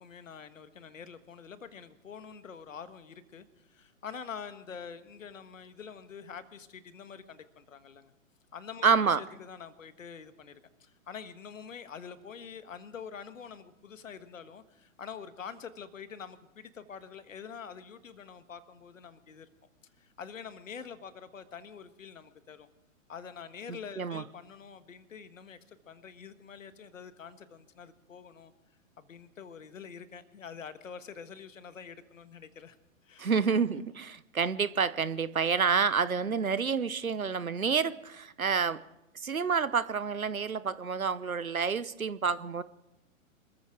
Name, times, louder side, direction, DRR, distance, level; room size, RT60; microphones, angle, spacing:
voice 1, 0.0-8.1 8.5-19.5 20.0-22.7 23.1-28.5 29.0-32.8 33.0-33.3, left 6 dB, 70° left, 12 dB, 1.5 m, -46 dB
voice 2, 8.8-9.2 24.0-24.2 33.2-38.8 39.2-42.6, right 6 dB, 90° right, 17 dB, 0.9 m, -28 dB
26.5 x 14.0 x 3.7 m, 0.92 s
figure-of-eight pair, 120°, 41 cm